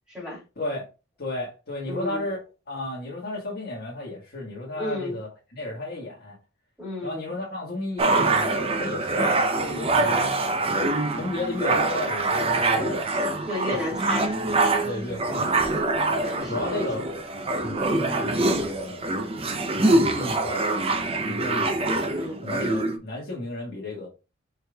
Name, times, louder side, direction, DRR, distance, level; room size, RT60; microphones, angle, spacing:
voice 1, 0.1-0.4 1.8-2.3 4.7-5.2 6.8-7.2 9.9-10.2 13.5-14.3 16.2-16.8 21.6-21.8 22.1-22.4, left 1 dB, 5° right, 2.8 m, -33 dB
voice 2, 1.2-2.4 2.7-6.3 7.0-8.5 8.7-10.4 10.7-13.0 14.4-15.6 16.3-17.0 17.6-19.1 19.7-21.7 22.4-24.1, left 2 dB, 50° left, 1.6 m, -33 dB
sound 1, 8.0-23.0, right 2 dB, 30° right, 0.6 m, -24 dB
5.0 x 4.3 x 2.3 m
head